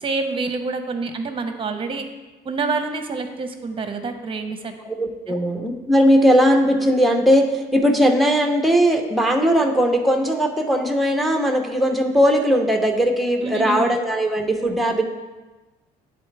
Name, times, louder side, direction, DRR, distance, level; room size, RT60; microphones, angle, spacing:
voice 1, 0.0-2.0 2.4-4.7 5.3-5.4 13.4-14.0, right 4 dB, 30° right, 7 dB, 0.8 m, -27 dB
voice 2, 4.8-15.0, equal, ahead, 3 dB, 0.8 m, -18 dB
10.0 x 4.1 x 3.3 m, 1.2 s
cardioid pair, 110°, 17 cm